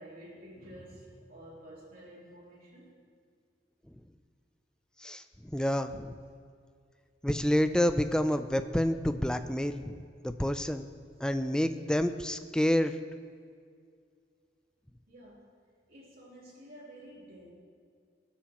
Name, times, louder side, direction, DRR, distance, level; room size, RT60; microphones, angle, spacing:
voice 1, 0.0-2.9 15.1-15.5 15.9-17.5, right 1 dB, 50° right, -6 dB, 3.3 m, -50 dB
voice 2, 5.0-6.2 7.2-10.0 10.2-10.9 11.2-13.0, equal, 5° left, 9 dB, 0.4 m, -28 dB
21.0 x 8.5 x 3.0 m, 2.1 s
head